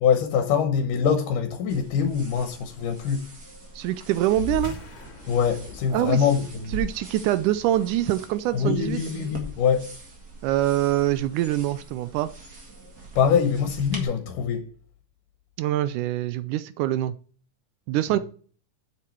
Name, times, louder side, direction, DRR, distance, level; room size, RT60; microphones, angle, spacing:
voice 1, 0.0-3.2 5.3-6.7 8.5-10.0 13.2-14.6 18.1-18.2, left 7 dB, 80° left, 2.5 m, -24 dB
sound 1, 1.7-14.0, right 1 dB, 35° right, 1.9 m, -42 dB
voice 2, 3.8-4.8 5.9-6.3 6.7-9.0 10.4-12.3 15.6-17.1 17.9-18.2, right 14 dB, 80° right, 2.0 m, -24 dB
sound 2, 4.3-9.2, left 5 dB, 55° left, 2.7 m, -40 dB
7.8 x 7.5 x 4.5 m
omnidirectional pair, 3.8 m